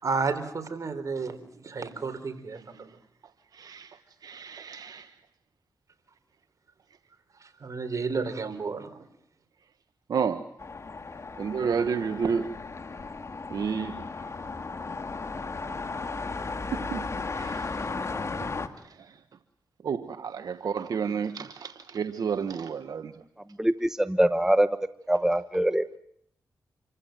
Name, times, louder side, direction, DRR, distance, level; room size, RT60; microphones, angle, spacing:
voice 1, 0.0-2.9 7.4-9.0, right 4 dB, 55° right, 4.1 m, -32 dB
voice 2, 3.6-3.9 4.2-5.0 10.1-10.4 11.4-12.5 13.5-14.0 16.7-17.0 17.3-17.6 19.8-23.1, right 6 dB, 70° right, 1.2 m, -30 dB
sound 1, 10.6-18.7, left 3 dB, 45° left, 2.4 m, -35 dB
voice 3, 23.6-24.7 25.1-25.9, right 1 dB, 10° right, 1.1 m, -23 dB
27.0 x 15.5 x 9.2 m
cardioid pair, 50°, 7 cm